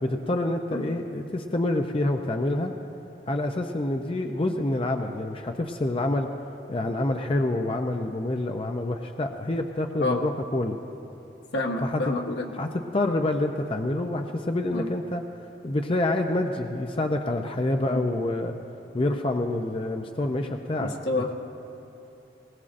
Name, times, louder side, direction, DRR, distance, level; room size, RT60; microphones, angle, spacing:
voice 1, 0.0-2.7 3.3-6.3 6.7-10.8 11.8-12.1 12.5-15.2 15.6-18.5 18.9-20.9, left 1 dB, 30° left, 4 dB, 0.5 m, -27 dB
voice 2, 11.5-12.5 14.7-14.9 17.9-18.0 20.8-21.3, left 2 dB, 85° left, 1 dB, 1.3 m, -28 dB
20.5 x 19.0 x 2.5 m, 2.9 s
head